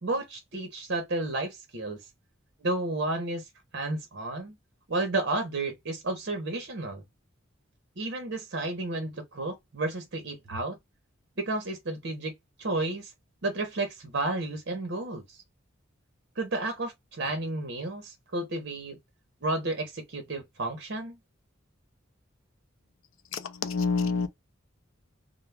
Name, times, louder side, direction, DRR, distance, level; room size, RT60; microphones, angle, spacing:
voice 1, 0.0-2.0 2.6-3.5 3.7-4.6 4.9-7.0 8.0-10.8 11.4-13.1 13.4-15.4 16.4-19.0 19.4-21.2, right 2 dB, 55° right, 0.7 m, -32 dB
voice 2, 23.3-24.3, left 4 dB, 80° left, 0.4 m, -27 dB
2.3 x 2.0 x 3.1 m
head